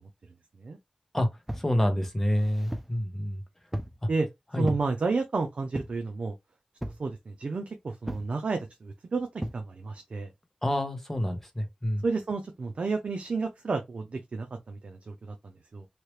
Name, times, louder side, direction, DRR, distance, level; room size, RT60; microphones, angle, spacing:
voice 1, 1.5-3.4 4.5-4.7 10.6-12.0, left 1 dB, 15° left, 1.1 m, -27 dB
sound 1, 1.5-1.7 2.3-3.0 3.7-4.0 4.6-4.9 5.7-6.1 6.8-7.1 8.1-8.3 9.4-9.6, equal, 10° right, 0.5 m, -36 dB
voice 2, 4.6-6.3 7.0-9.3 9.5-10.3 12.0-15.9, right 4 dB, 70° right, 0.5 m, -31 dB
3.1 x 2.8 x 3.1 m
wide cardioid pair, 85°, 2 cm